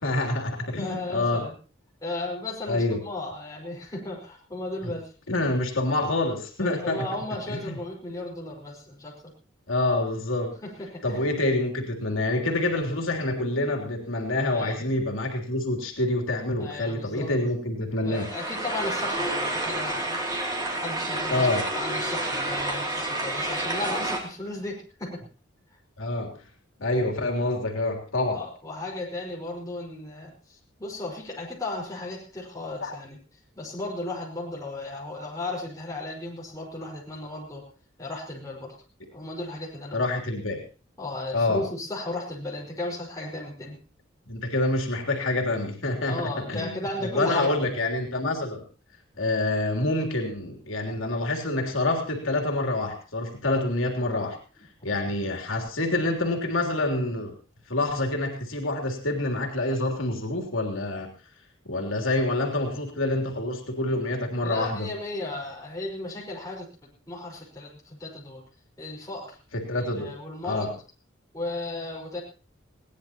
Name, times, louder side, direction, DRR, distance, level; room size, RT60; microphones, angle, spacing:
voice 1, 0.0-1.5 2.7-3.0 5.3-7.1 7.5-7.7 9.7-10.6 11.0-18.3 21.3-21.7 26.0-26.3 26.8-28.4 32.8-32.9 39.9-40.6 41.3-41.6 44.3-48.6 49.2-54.4 54.8-57.3 57.7-61.1 61.6-64.9 69.5-70.1 70.4-70.7, left 2 dB, 80° left, 1 dB, 3.3 m, -27 dB
voice 2, 0.8-1.6 2.0-5.1 6.6-9.3 10.6-11.2 14.5-14.8 16.6-17.3 18.0-20.2 20.8-25.2 25.7-25.8 28.3-33.2 33.6-37.7 38.0-38.7 39.1-40.0 41.0-43.8 46.0-47.5 64.4-68.4 68.8-69.4 69.7-70.7 71.3-72.2, left 2 dB, 15° left, -3 dB, 5.2 m, -35 dB
sound 1, 18.1-24.2, right 2 dB, 20° right, 2.9 m, -29 dB
21.0 x 18.0 x 3.0 m, 0.36 s
head